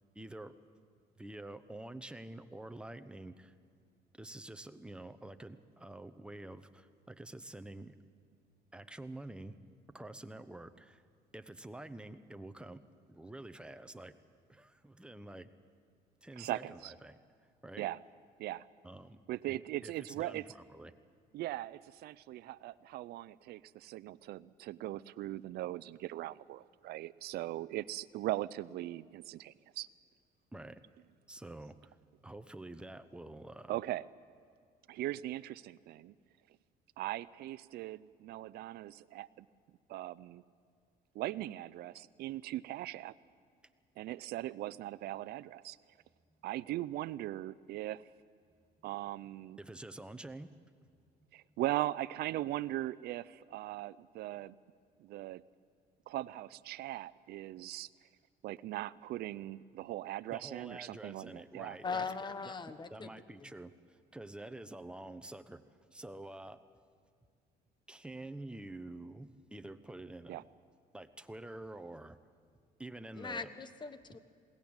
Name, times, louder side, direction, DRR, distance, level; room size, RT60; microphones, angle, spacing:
voice 1, 0.1-0.5 1.2-3.5 4.2-7.9 8.7-9.5 9.9-11.0 11.3-12.8 13.1-14.2 14.5-15.5 16.2-17.2 17.6-17.9 18.8-19.2 19.5-20.9 30.5-30.8 31.3-32.0 32.2-33.8 49.6-50.5 60.3-62.1 62.4-62.5 62.9-65.6 65.9-66.6 67.9-70.4 70.9-72.2 72.8-73.5, right 2 dB, 5° right, 9 dB, 0.9 m, -48 dB
voice 2, 16.4-16.9 17.8-18.0 18.4-18.6 19.3-20.5 21.3-29.9 33.7-34.0 34.9-36.1 37.0-39.5 39.9-40.4 41.1-43.1 44.0-45.8 46.4-48.0 48.8-49.6 51.3-54.6 55.0-55.4 56.1-57.9 58.4-61.8 70.3-70.4, right 15 dB, 70° right, 16 dB, 0.5 m, -39 dB
voice 3, 61.8-63.1 73.1-74.2, left 4 dB, 25° left, 12 dB, 1.2 m, -39 dB
21.0 x 17.5 x 8.9 m, 2.2 s
cardioid pair, 110°, 17 cm